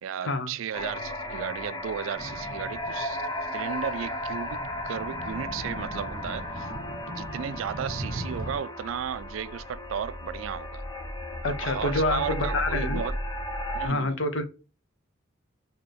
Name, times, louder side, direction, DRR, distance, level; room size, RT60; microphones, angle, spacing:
voice 1, 0.0-6.7 7.1-10.8 11.4-13.2 13.7-14.2, right 8 dB, 90° right, 0.3 m, -35 dB
sound 1, 0.7-13.9, left 1 dB, 20° left, 0.6 m, -35 dB
sound 2, 2.2-8.6, right 1 dB, 50° right, 1.3 m, -39 dB
voice 2, 11.4-13.0 13.8-14.4, left 2 dB, 75° left, 0.8 m, -27 dB
3.8 x 2.8 x 3.2 m
head